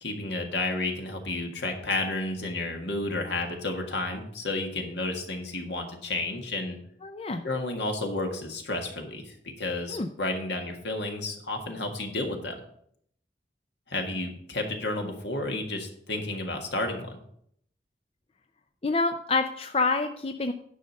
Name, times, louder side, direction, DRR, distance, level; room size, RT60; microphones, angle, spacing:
voice 1, 0.0-6.8 7.4-12.6 13.9-17.2, left 2 dB, 80° left, 3 dB, 1.8 m, -31 dB
voice 2, 7.0-7.4 9.9-10.1 18.8-20.5, left 3 dB, 35° left, 7 dB, 0.5 m, -27 dB
10.0 x 5.1 x 6.4 m, 0.69 s
head